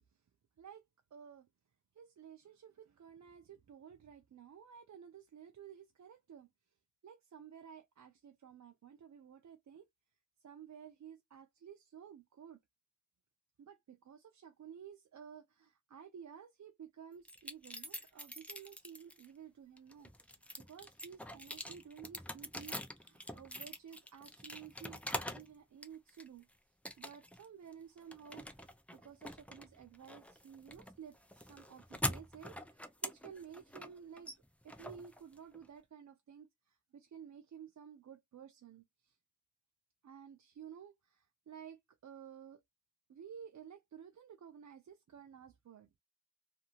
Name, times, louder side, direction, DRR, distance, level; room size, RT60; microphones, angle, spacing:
voice 1, 1.1-1.5 1.9-6.5 7.0-9.9 10.4-12.6 13.6-26.5 27.0-34.3 34.6-39.2 40.0-42.6 43.1-46.0, right 8 dB, 65° right, 0.5 m, -54 dB
sound 1, 17.2-19.3 19.8-25.5 25.8-26.4 26.8-27.4 27.7-35.7, left 1 dB, 5° left, 0.6 m, -44 dB
2.6 x 2.6 x 2.8 m
wide cardioid pair, 65°, 31 cm